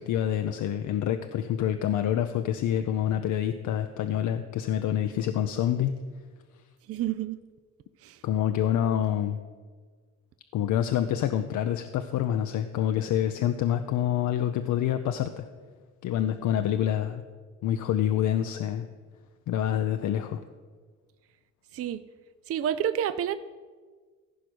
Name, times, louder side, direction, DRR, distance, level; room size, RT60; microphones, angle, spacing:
voice 1, 0.0-5.9 8.2-9.4 10.5-15.5 16.0-17.2 17.6-18.9 19.5-20.4, left 10 dB, 75° left, 8 dB, 0.6 m, -27 dB
voice 2, 6.9-7.4 8.0-8.2 21.7-22.0 22.5-23.4, right 10 dB, 50° right, 13 dB, 0.5 m, -29 dB
15.0 x 5.1 x 6.2 m, 1.5 s
cardioid pair, 90°, 30 cm